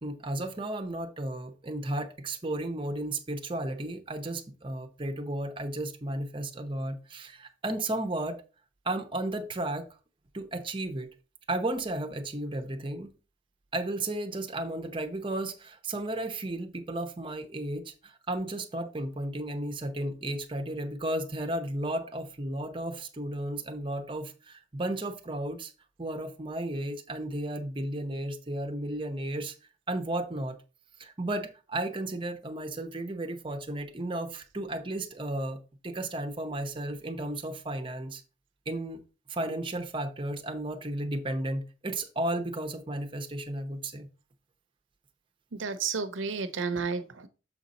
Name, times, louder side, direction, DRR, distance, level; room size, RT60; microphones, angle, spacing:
voice 1, 0.0-8.4 8.8-9.9 10.3-11.1 11.5-13.1 13.7-25.7 26.0-29.5 29.9-30.6 31.0-38.2 38.7-39.0 39.3-44.1, right 1 dB, 25° right, 0.8 m, -34 dB
voice 2, 45.5-47.3, right 5 dB, 75° right, 0.8 m, -32 dB
7.2 x 4.0 x 4.1 m
head